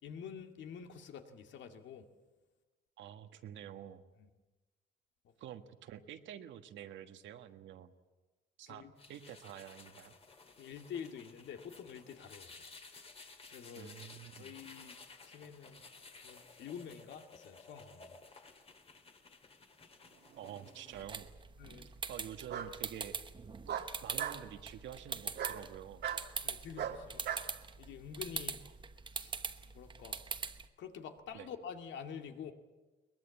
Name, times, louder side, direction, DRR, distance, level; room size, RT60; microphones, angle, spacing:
voice 1, 0.0-2.1 4.2-4.3 5.2-5.3 8.7-8.9 10.6-12.6 13.5-13.9 14.4-14.9 15.2-15.8 16.2-18.2 21.6-21.9 26.4-27.3 27.8-28.6 29.1-29.3 29.7-30.3 30.8-32.5, left 7 dB, 80° left, 6 dB, 2.2 m, -47 dB
voice 2, 3.0-4.0 5.4-7.9 8.6-10.1 13.8-14.5 20.4-21.3 21.8-23.1 24.0-26.0 31.3-31.5, right 10 dB, 90° right, 8 dB, 1.5 m, -48 dB
sound 1, 9.0-21.0, left 4 dB, 30° left, 2.1 m, -56 dB
Bark, 20.3-21.0 22.5-22.7 23.7-24.4 25.3-25.6 26.0-26.2 26.8-27.5, right 9 dB, 65° right, 1.7 m, -38 dB
sound 2, 20.9-30.7, right 5 dB, 25° right, 1.0 m, -43 dB
22.0 x 21.0 x 8.4 m, 1.2 s
cardioid pair, 145°, 19 cm